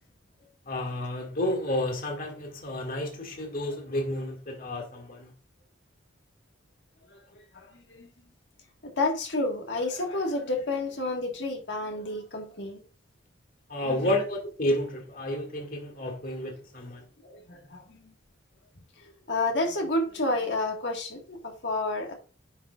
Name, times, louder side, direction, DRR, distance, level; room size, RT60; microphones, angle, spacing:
voice 1, 0.7-5.3 13.7-17.0, left 1 dB, 45° left, 1.9 m, -31 dB
voice 2, 7.1-8.1 8.8-12.8 13.8-14.1 17.2-18.1 19.0-22.1, left 2 dB, 65° left, 1.6 m, -30 dB
9.8 x 6.2 x 2.4 m
head